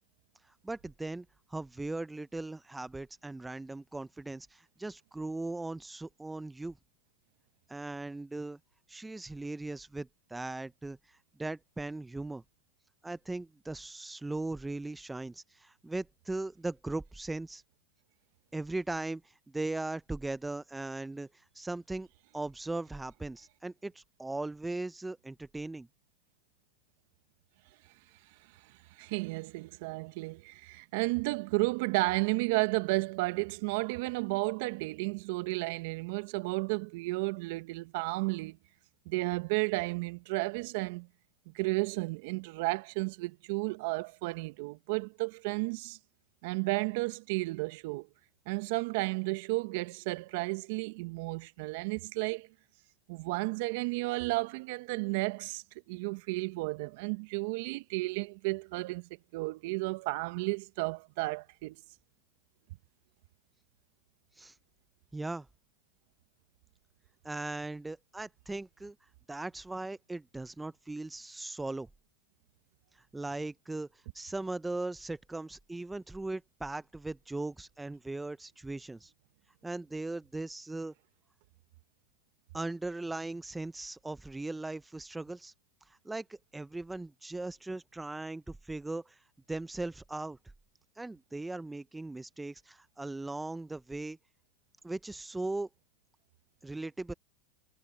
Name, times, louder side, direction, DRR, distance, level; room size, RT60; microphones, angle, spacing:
voice 1, 0.6-1.2 1.5-6.8 7.7-8.6 8.9-12.4 13.0-17.6 18.5-22.1 22.3-25.9 64.4-64.5 65.1-65.5 67.2-68.9 69.3-71.9 73.1-79.1 79.6-80.9 82.5-85.5 85.9-89.2 89.5-90.4 91.0-94.2 94.8-95.7 96.6-97.1, right 2 dB, 10° right, 0.7 m, -38 dB
voice 2, 29.0-38.6 39.0-41.1 41.5-46.0 46.4-48.1 48.5-52.5 53.1-61.7, right 25 dB, 60° right, 1.2 m, -33 dB
hypercardioid pair, 105°, 0 cm